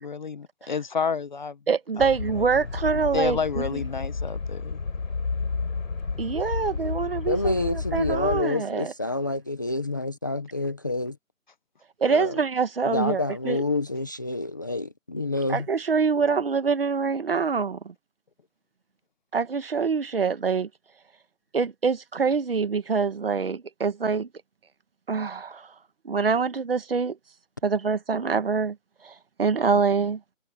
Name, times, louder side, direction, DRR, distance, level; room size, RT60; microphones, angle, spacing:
voice 1, 0.0-1.6 2.0-2.1 2.3-2.5 2.9-4.8, left 5 dB, 35° left, 1.4 m, -30 dB
voice 2, 1.7-3.8 6.2-8.9 12.0-13.6 15.5-17.9 19.3-20.7 21.5-24.3 25.1-25.7 26.0-27.2 27.6-28.8 29.0-30.2, right 5 dB, 45° right, 1.8 m, -25 dB
sound 1, 2.0-8.4, left 4 dB, 75° left, 4.5 m, -31 dB
voice 3, 7.3-11.2 12.1-12.4 12.9-15.7, left 2 dB, 15° left, 0.9 m, -28 dB
hypercardioid pair, 175°, 40 cm